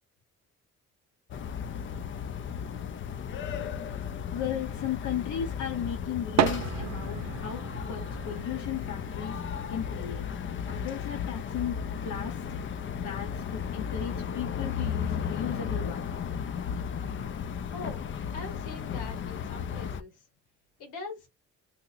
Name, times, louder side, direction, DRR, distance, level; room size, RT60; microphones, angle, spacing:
sound 1, 1.3-20.0, left 7 dB, 40° left, 0.4 m, -35 dB
sound 2, 4.1-4.8 5.8-5.9 6.1-17.4, right 8 dB, 60° right, 0.6 m, -37 dB
voice 1, 4.3-12.4 12.9-16.2, left 9 dB, 65° left, 0.8 m, -36 dB
voice 2, 17.7-18.0 18.3-20.2 20.8-21.3, left 3 dB, 90° left, 1.5 m, -42 dB
2.9 x 2.1 x 3.8 m
cardioid pair, 90°, 30 cm